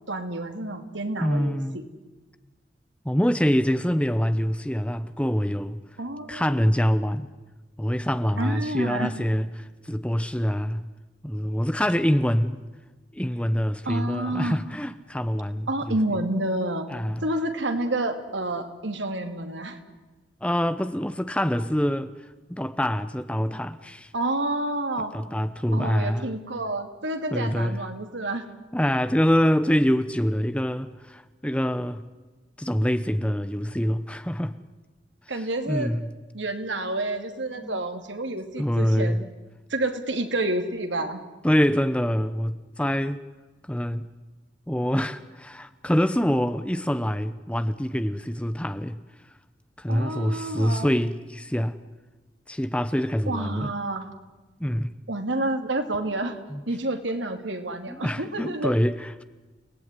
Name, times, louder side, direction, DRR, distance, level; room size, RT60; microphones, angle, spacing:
voice 1, 0.1-1.8 6.0-6.7 8.4-9.1 13.8-14.6 15.7-16.9 17.2-19.8 24.1-25.1 25.7-28.4 35.3-35.9 36.3-39.3 39.7-41.2 49.9-50.9 53.3-54.1 55.1-56.4 56.7-58.7, right 2 dB, 80° right, 2.8 m, -29 dB
voice 2, 1.2-1.8 3.0-5.8 6.3-7.3 7.8-10.9 11.2-12.6 13.1-16.0 16.9-17.2 20.4-22.1 22.5-24.1 25.1-26.3 27.3-27.8 28.7-32.0 32.6-34.6 35.7-36.1 37.6-37.8 38.6-39.2 41.4-43.2 43.7-44.0 44.7-49.0 49.8-51.8 52.5-53.7 54.6-54.9 56.5-56.6 57.9-59.2, equal, 5° left, 0.8 m, -25 dB
30.0 x 18.5 x 9.8 m
head